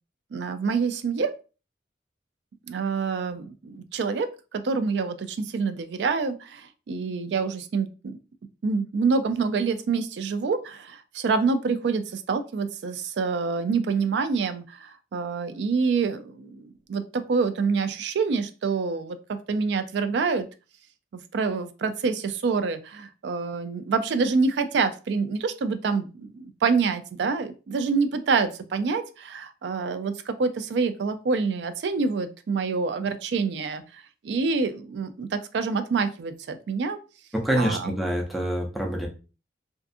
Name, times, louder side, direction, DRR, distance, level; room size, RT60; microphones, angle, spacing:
voice 1, 0.3-1.4 2.7-8.2 8.6-20.5 21.1-33.8 34.2-37.0 37.6-38.0, right 4 dB, 75° right, 10 dB, 0.3 m, -26 dB
voice 2, 37.3-39.1, right 1 dB, ahead, -1 dB, 0.5 m, -26 dB
2.5 x 2.4 x 2.5 m, 0.33 s
head